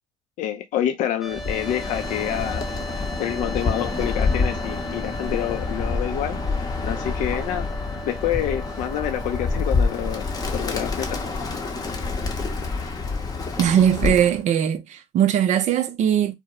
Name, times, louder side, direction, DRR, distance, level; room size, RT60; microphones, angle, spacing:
voice 1, 0.4-2.6 3.2-6.4 6.8-7.7 8.0-11.2, left 11 dB, 60° left, 0.4 m, -27 dB
sound 1, 1.2-11.3, right 2 dB, ahead, 0.3 m, -39 dB
Bird, 1.3-14.4, left 3 dB, 25° left, 0.7 m, -27 dB
voice 2, 13.6-16.3, right 9 dB, 55° right, 0.5 m, -20 dB
2.3 x 2.0 x 2.8 m
supercardioid pair, 75°, 14 cm